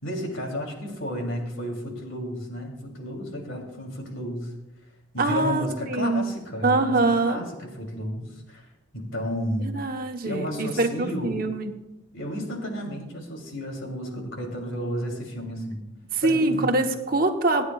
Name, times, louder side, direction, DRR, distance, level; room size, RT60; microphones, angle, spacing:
voice 1, 0.0-4.5 5.1-7.0 7.2-8.6 8.9-9.7 10.2-11.4 12.1-15.8 16.2-16.8, equal, 85° left, 1 dB, 3.0 m, -32 dB
voice 2, 5.2-6.3 6.6-7.4 9.6-11.7 16.1-17.6, right 2 dB, 45° right, 4 dB, 1.1 m, -24 dB
27.0 x 9.5 x 2.4 m, 0.99 s
head